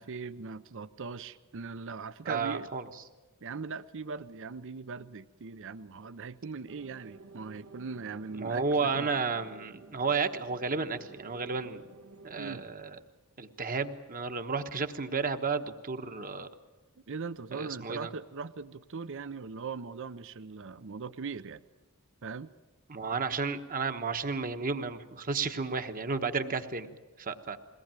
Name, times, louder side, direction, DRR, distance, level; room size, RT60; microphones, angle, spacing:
voice 1, 0.0-2.7 3.4-9.1 12.4-12.6 17.1-21.6 22.2-22.5, right 4 dB, 60° right, 14 dB, 0.6 m, -40 dB
voice 2, 2.2-2.8 8.3-11.8 12.2-13.0 13.4-16.5 17.5-18.1 22.9-27.6, right 4 dB, 40° right, 8 dB, 1.2 m, -32 dB
sound 1, 6.7-12.7, right 3 dB, 80° right, 1.5 m, -53 dB
22.0 x 18.0 x 9.0 m, 1.2 s
head